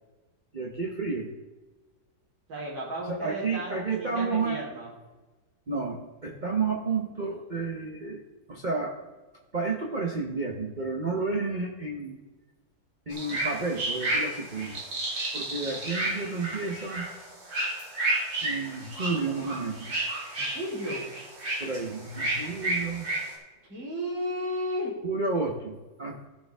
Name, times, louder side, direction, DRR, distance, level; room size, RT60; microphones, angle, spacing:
voice 1, 0.5-1.3 3.1-4.6 5.7-9.0 9.5-12.2 13.1-14.8 15.3-17.1 18.4-19.9 21.6-23.1 25.0-26.4, right 4 dB, 35° right, 0 dB, 0.8 m, -31 dB
voice 2, 2.5-4.9 20.4-21.0 23.7-24.9, equal, 85° right, -5 dB, 4.4 m, -34 dB
sound 1, 13.1-23.3, right 2 dB, 55° right, 2.9 m, -31 dB
14.5 x 7.0 x 3.5 m, 1.2 s
omnidirectional pair, 2.0 m